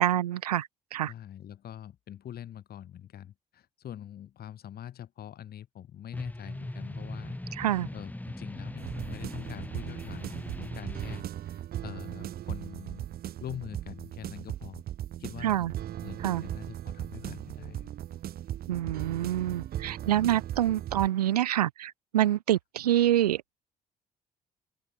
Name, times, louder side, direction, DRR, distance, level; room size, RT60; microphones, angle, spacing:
voice 1, 0.0-1.1 7.5-7.9 15.4-15.7 16.2-16.4 18.7-23.4, right 12 dB, 75° right, 1.2 m, -26 dB
voice 2, 1.1-7.4 7.9-13.1 13.4-14.8 15.2-15.7 16.0-17.9 20.9-21.0, left 11 dB, 50° left, 5.0 m, -44 dB
sound 1, 6.1-11.2, left 1 dB, 10° left, 7.2 m, -40 dB
sound 2, 8.8-21.1, right 12 dB, 50° right, 1.9 m, -38 dB
open air
figure-of-eight pair, 45°, 20 cm